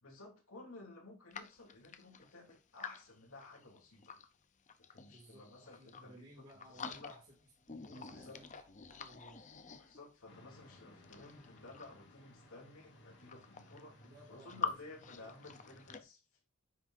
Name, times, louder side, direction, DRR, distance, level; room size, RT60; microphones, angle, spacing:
voice 1, 0.0-4.1 4.9-6.3 6.8-7.2 8.1-8.4 9.8-13.9 14.3-16.2, left 2 dB, 70° left, 3.0 m, -54 dB
sound 1, 1.3-4.3 4.7-6.2 6.5-7.4 7.7-10.2 10.9-12.1 12.9-13.0 13.1-14.7 15.0-16.0, left 6 dB, 35° left, 0.6 m, -47 dB
voice 2, 5.1-7.3 7.7-9.5 14.0-14.6 15.0-15.3, right 1 dB, 40° right, 2.6 m, -59 dB
sound 2, 10.3-16.0, left 1 dB, 55° left, 2.0 m, -61 dB
9.3 x 6.1 x 2.6 m
head